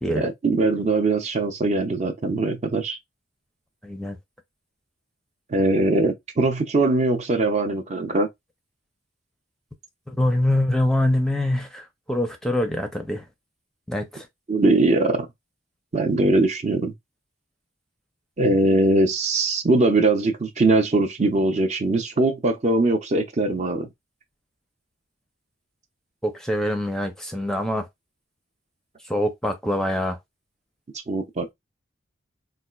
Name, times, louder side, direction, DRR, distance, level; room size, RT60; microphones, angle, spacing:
voice 1, 0.2-3.0 5.5-8.3 14.5-15.3 15.9-16.9 18.4-23.9 31.1-31.5, right 2 dB, 35° right, 0.6 m, -21 dB
voice 2, 3.8-4.2 10.1-13.2 13.9-14.3 26.2-27.9 29.1-30.2, left 1 dB, 5° left, 0.5 m, -24 dB
4.2 x 2.4 x 2.3 m
head